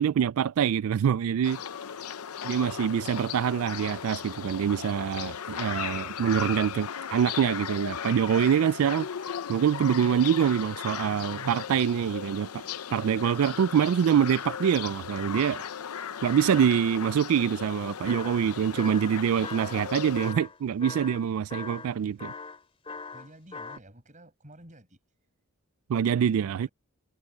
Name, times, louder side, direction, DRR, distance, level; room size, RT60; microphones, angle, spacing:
voice 1, 0.0-1.6 2.4-9.1 9.5-12.6 12.9-15.6 16.2-22.3 25.9-26.7, right 8 dB, 70° right, 0.3 m, -25 dB
sound 1, 1.4-20.3, left 8 dB, 80° left, 0.7 m, -37 dB
sound 2, 18.1-18.5 18.8-19.9 20.2-23.8, left 4 dB, 25° left, 2.6 m, -40 dB
voice 2, 23.1-25.0 26.1-26.7, right 1 dB, 35° right, 7.6 m, -51 dB
head